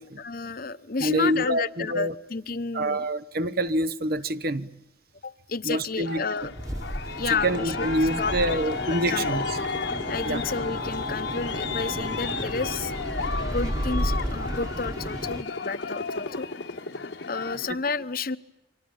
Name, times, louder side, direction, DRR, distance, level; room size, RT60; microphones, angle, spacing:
voice 1, 0.2-3.1 5.2-6.5 7.1-7.9 8.2-8.6 8.9-9.4 9.9-12.9 13.4-16.5 17.2-18.4, left 4 dB, 50° left, 0.9 m, -31 dB
voice 2, 1.0-2.1 2.7-4.7 5.6-6.2 7.3-9.6 10.3-10.4, right 1 dB, 55° right, 1.0 m, -26 dB
Aircraft, 6.0-17.7, left 4 dB, 70° left, 1.3 m, -33 dB
sound 1, 6.4-15.4, equal, 20° right, 1.5 m, -33 dB
30.0 x 25.0 x 7.2 m
head